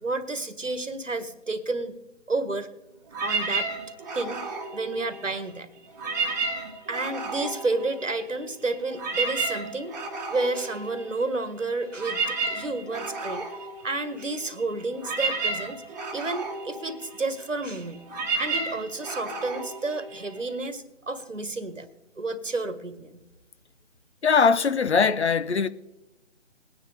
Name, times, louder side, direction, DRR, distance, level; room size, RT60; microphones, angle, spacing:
voice 1, 0.0-2.0 2.3-2.7 3.2-3.7 4.1-5.7 6.9-9.9 10.3-13.5 13.8-15.8 16.1-18.0 18.4-21.9 22.2-23.2, right 2 dB, 85° right, 1.6 m, -31 dB
sound 1, 3.1-5.5 5.9-8.4 8.7-20.7, right 3 dB, 15° right, 1.3 m, -32 dB
voice 2, 24.2-25.7, left 5 dB, 60° left, 0.7 m, -21 dB
20.5 x 9.7 x 3.3 m
figure-of-eight pair, 160°, 37 cm